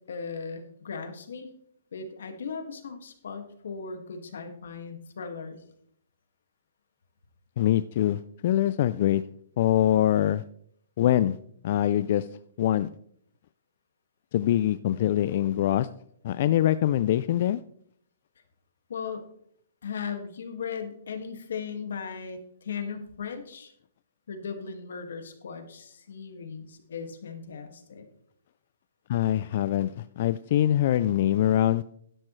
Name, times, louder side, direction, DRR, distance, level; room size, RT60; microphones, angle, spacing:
voice 1, 0.1-1.5 1.9-5.6 18.9-19.2 19.8-23.7 24.3-28.1, left 6 dB, 75° left, 6 dB, 1.9 m, -37 dB
voice 2, 7.6-9.2 9.6-10.4 11.0-11.4 11.6-12.3 12.6-12.9 14.3-15.9 16.2-17.6 29.1-31.8, left 12 dB, 40° left, 14 dB, 0.3 m, -24 dB
12.0 x 10.5 x 3.2 m, 0.66 s
hypercardioid pair, 170°, 0 cm